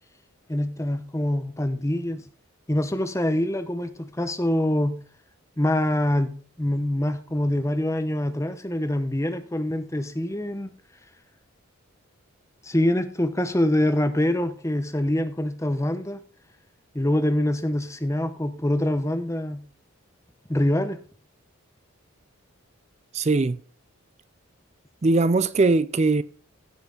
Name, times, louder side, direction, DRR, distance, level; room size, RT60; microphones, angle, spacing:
voice 1, 0.5-2.2 2.7-5.0 5.6-6.3 6.6-10.7 12.6-16.2 16.9-19.6 20.5-21.0, left 1 dB, 15° left, 0.7 m, -25 dB
voice 2, 23.1-23.6 25.0-26.2, right 3 dB, 30° right, 0.4 m, -20 dB
16.0 x 5.7 x 3.9 m
head